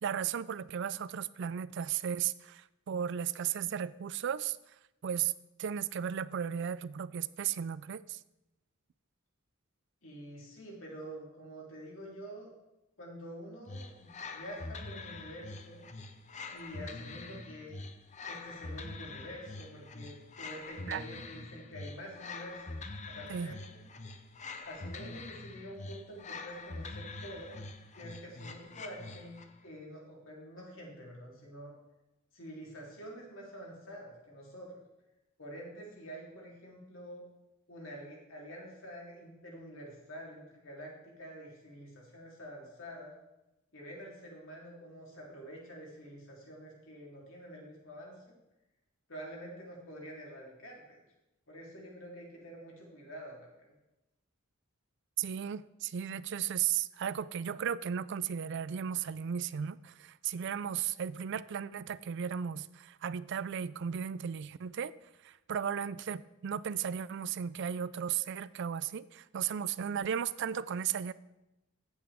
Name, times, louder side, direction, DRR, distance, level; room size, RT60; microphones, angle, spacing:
voice 1, 0.0-4.6 5.0-5.3 5.6-8.2 20.9-21.0 23.3-23.5 55.2-64.9 65.2-71.1, right 8 dB, 60° right, 17 dB, 0.4 m, -35 dB
voice 2, 10.0-12.5 13.0-15.9 16.5-17.8 18.3-22.8 23.1-23.8 24.6-27.6 27.9-29.4 29.6-31.7 32.3-34.7 35.4-37.2 37.7-43.1 43.7-48.3 49.1-51.0 51.5-53.7, equal, 70° left, -3 dB, 3.3 m, -47 dB
sound 1, 13.7-29.6, left 3 dB, 35° left, 0.7 m, -45 dB
15.0 x 8.2 x 3.5 m, 0.95 s
head